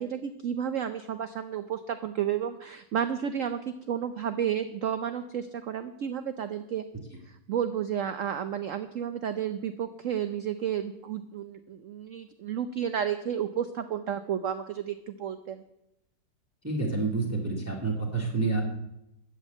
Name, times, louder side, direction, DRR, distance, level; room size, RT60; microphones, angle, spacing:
voice 1, 0.0-6.8 7.5-15.6, right 9 dB, 60° right, 10 dB, 0.9 m, -32 dB
voice 2, 16.6-18.6, right 3 dB, 10° right, -1 dB, 2.1 m, -28 dB
14.0 x 6.4 x 9.1 m, 0.84 s
omnidirectional pair, 1.9 m